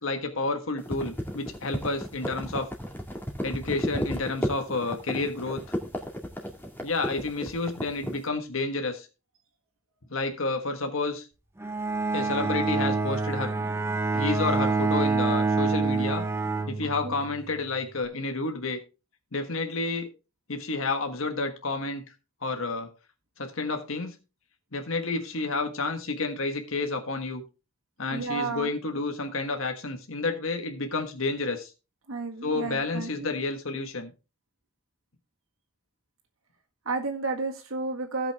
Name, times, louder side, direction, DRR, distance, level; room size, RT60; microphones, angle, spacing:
voice 1, 0.0-2.7 3.4-5.8 6.8-9.1 10.1-11.3 12.1-13.5 14.1-16.2 16.7-18.8 19.3-20.1 20.5-22.0 22.4-22.9 23.4-24.1 24.7-27.4 28.0-31.7 32.4-34.1, left 3 dB, 70° left, 5 dB, 1.5 m, -30 dB
sound 1, 0.8-8.2, equal, 10° left, 2.1 m, -33 dB
Bowed string instrument, 11.6-17.4, right 3 dB, 10° right, 0.9 m, -27 dB
voice 2, 28.1-28.7 32.1-33.3 36.9-38.3, right 3 dB, 75° right, 3 dB, 1.7 m, -32 dB
17.0 x 5.9 x 3.5 m, 0.31 s
head